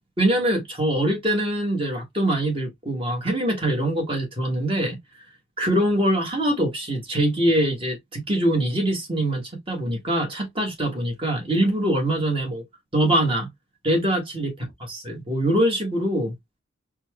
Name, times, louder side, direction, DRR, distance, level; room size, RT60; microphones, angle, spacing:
voice 1, 0.2-5.0 5.6-12.6 12.9-13.5 13.8-14.5 14.8-16.3, right 1 dB, 25° right, 1.5 m, -23 dB
4.3 x 2.3 x 2.9 m
head